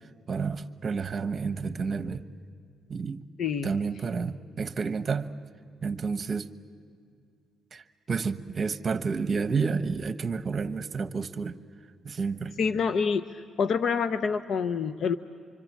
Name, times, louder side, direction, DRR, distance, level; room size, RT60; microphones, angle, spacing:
voice 1, 0.3-2.2 2.9-3.2 3.6-5.3 5.8-6.5 7.7-11.6 12.0-12.5, right 5 dB, 40° right, 10 dB, 1.1 m, -30 dB
voice 2, 3.4-3.7 12.6-15.2, left 6 dB, 60° left, 11 dB, 0.7 m, -27 dB
26.0 x 25.0 x 7.5 m, 2.2 s
cardioid pair, 90°, 0 cm